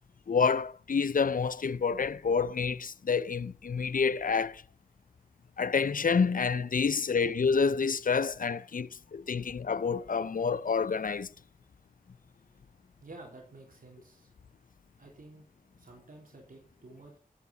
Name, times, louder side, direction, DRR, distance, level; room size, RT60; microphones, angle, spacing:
voice 1, 0.3-4.6 5.6-11.3, left 5 dB, 65° left, 0.6 m, -28 dB
voice 2, 13.0-14.3 15.0-15.4 15.8-17.2, right 2 dB, 70° right, 3.4 m, -51 dB
18.0 x 8.3 x 4.1 m
cardioid pair, 45°, 15 cm